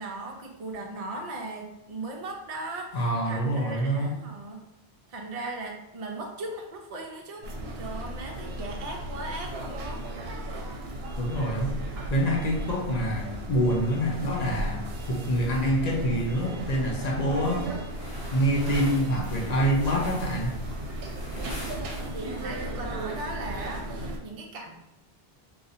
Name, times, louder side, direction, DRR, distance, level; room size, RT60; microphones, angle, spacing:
voice 1, 0.0-4.6 5.1-7.4 7.7-10.0 22.1-24.7, right 2 dB, 50° right, 1 dB, 0.5 m, -38 dB
voice 2, 2.9-4.2 11.2-11.8 12.1-14.8 15.1-17.6 18.3-20.5, equal, 45° left, -1 dB, 0.7 m, -26 dB
sound 1, 7.4-24.2, right 1 dB, 75° right, 0.8 m, -35 dB
sound 2, 17.9-22.5, equal, 70° left, 1.0 m, -41 dB
2.6 x 2.4 x 3.9 m, 0.87 s
omnidirectional pair, 1.1 m